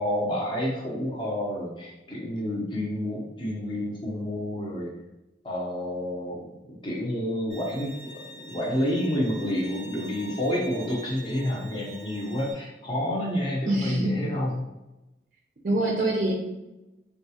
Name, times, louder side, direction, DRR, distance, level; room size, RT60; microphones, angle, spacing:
voice 1, 0.0-4.9 5.4-14.7, left 1 dB, 25° left, -3 dB, 0.7 m, -29 dB
Bowed string instrument, 7.5-12.5, right 1 dB, 60° left, 1.2 m, -45 dB
voice 2, 13.7-14.2 15.6-16.3, right 1 dB, 45° right, -1 dB, 0.4 m, -24 dB
3.5 x 2.3 x 2.8 m, 0.99 s
head